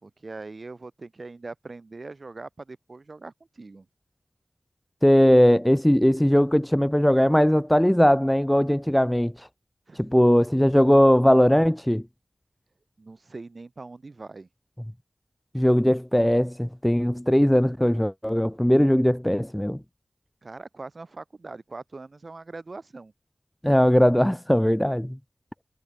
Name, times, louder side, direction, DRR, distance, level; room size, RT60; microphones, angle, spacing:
voice 1, 0.0-3.9 9.9-10.1 13.0-14.5 20.4-23.1, right 3 dB, 55° right, 3.4 m, -41 dB
voice 2, 5.0-9.3 10.0-12.0 15.5-19.8 23.6-25.2, equal, 5° left, 0.7 m, -19 dB
wide cardioid pair, 65°, 0 cm